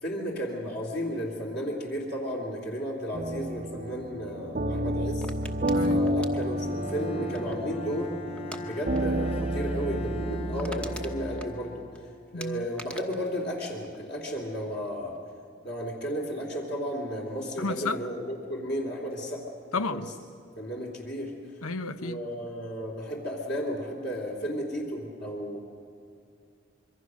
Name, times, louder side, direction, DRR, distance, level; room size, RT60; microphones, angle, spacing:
voice 1, 0.0-5.3 5.9-8.2 8.6-11.8 12.3-15.1 15.6-20.0 20.6-21.3 22.0-25.6, equal, 45° left, 3.1 m, -33 dB
sound 1, 3.1-11.4, equal, 35° right, 0.7 m, -30 dB
sound 2, 5.2-7.8 8.4-8.6 8.9-9.2 9.4-9.5 10.0-10.1 10.3-12.0 12.4-14.4 14.7-15.2, equal, 5° left, 1.0 m, -44 dB
Bowed string instrument, 6.5-12.5, left 2 dB, 25° left, 0.5 m, -40 dB
voice 2, 12.3-12.7 17.6-18.0 19.7-20.1 21.6-22.2, left 3 dB, 80° left, 0.9 m, -32 dB
25.5 x 23.0 x 6.3 m
head